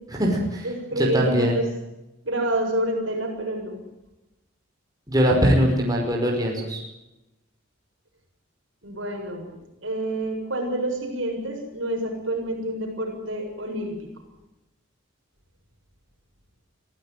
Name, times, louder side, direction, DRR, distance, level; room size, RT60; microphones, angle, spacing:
voice 1, 0.1-0.7 1.0-1.6 5.1-6.8, equal, 20° right, -1 dB, 5.4 m, -21 dB
voice 2, 0.6-1.7 2.3-3.8 8.8-14.1, right 1 dB, 65° right, 2 dB, 7.2 m, -28 dB
24.0 x 16.0 x 9.3 m, 0.97 s
head